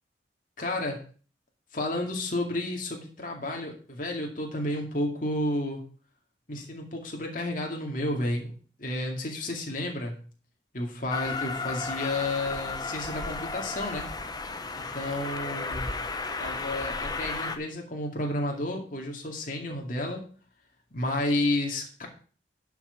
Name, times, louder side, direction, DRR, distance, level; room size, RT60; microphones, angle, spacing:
voice 1, 0.6-1.0 1.7-5.8 6.5-8.5 8.8-10.2 10.7-14.1 14.8-15.9 16.4-20.3 20.9-22.1, left 1 dB, 45° left, 1 dB, 2.2 m, -31 dB
Train, 11.1-17.6, left 3 dB, 20° left, 0.8 m, -34 dB
11.5 x 6.0 x 5.2 m, 0.39 s
head